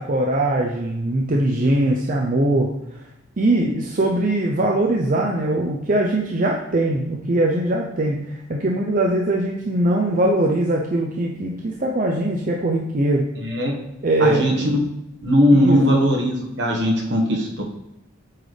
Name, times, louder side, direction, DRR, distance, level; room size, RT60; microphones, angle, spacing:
voice 1, 0.0-2.7 3.4-8.2 8.5-13.3 14.0-14.6 15.5-15.8, right 1 dB, 45° right, -1 dB, 0.6 m, -21 dB
voice 2, 13.4-13.7 14.2-14.8 15.2-17.6, equal, 65° right, 0 dB, 1.3 m, -19 dB
8.6 x 4.1 x 3.3 m, 0.83 s
head